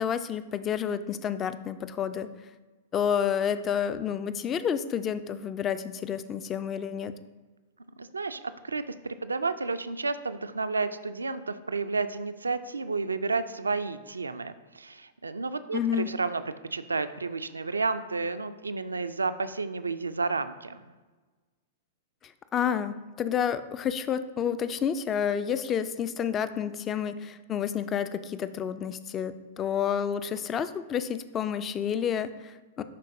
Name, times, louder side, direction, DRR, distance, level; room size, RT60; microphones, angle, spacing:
voice 1, 0.0-2.3 2.9-7.1 15.7-16.1 22.2-32.8, left 8 dB, 25° left, 13 dB, 0.3 m, -30 dB
voice 2, 8.0-16.4 16.7-20.9, right 4 dB, 75° right, 12 dB, 0.3 m, -31 dB
11.0 x 3.9 x 2.6 m, 1.3 s
figure-of-eight pair, 100°, 0 cm